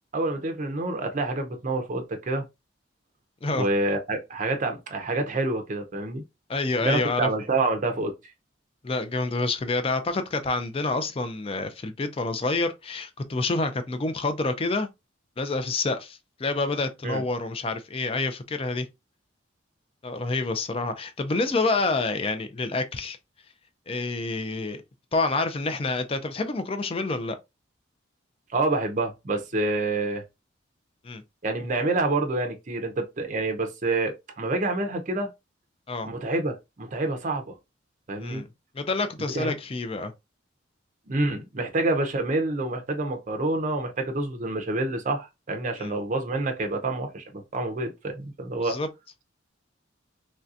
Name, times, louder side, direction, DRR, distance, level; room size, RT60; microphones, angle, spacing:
voice 1, 0.1-2.4 3.5-6.2 6.8-8.1 17.0-17.2 28.5-30.2 31.4-35.3 36.0-37.6 38.1-38.4 39.2-39.5 41.1-48.8, right 2 dB, 40° right, 0.5 m, -27 dB
voice 2, 6.5-7.3 8.8-14.9 15.4-18.9 20.0-23.2 23.9-24.8 25.1-27.4 31.0-31.2 35.9-36.1 38.2-38.5 38.7-40.1 45.8-46.0 48.6-48.9, left 3 dB, 30° left, 0.4 m, -28 dB
3.2 x 2.7 x 2.4 m
head